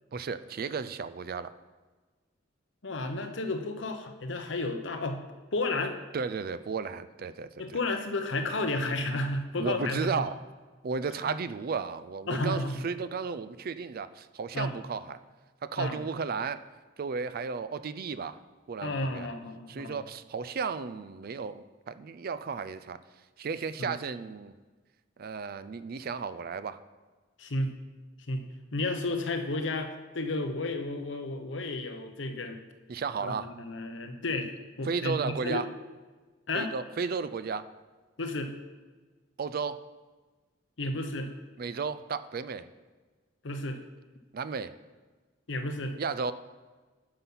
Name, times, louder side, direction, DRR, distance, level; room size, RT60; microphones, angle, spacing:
voice 1, 0.1-1.5 6.1-7.8 9.6-10.4 10.8-15.2 15.6-16.7 17.0-18.4 18.7-19.3 19.7-23.0 23.4-24.5 25.2-26.8 32.9-33.5 34.8-35.7 36.5-37.7 39.4-39.8 41.6-42.7 44.3-44.7 46.0-46.3, right 5 dB, 55° right, 14 dB, 0.4 m, -34 dB
voice 2, 2.8-5.2 5.5-6.0 7.6-10.2 11.2-11.3 12.3-12.8 14.5-14.8 15.8-16.0 18.8-20.0 23.8-24.0 27.4-27.8 28.3-28.4 28.7-32.6 33.2-35.6 36.5-36.7 38.2-38.5 40.8-41.3 43.4-43.8 45.5-46.0, left 2 dB, 75° left, 6 dB, 0.9 m, -32 dB
9.8 x 5.8 x 5.6 m, 1.3 s
head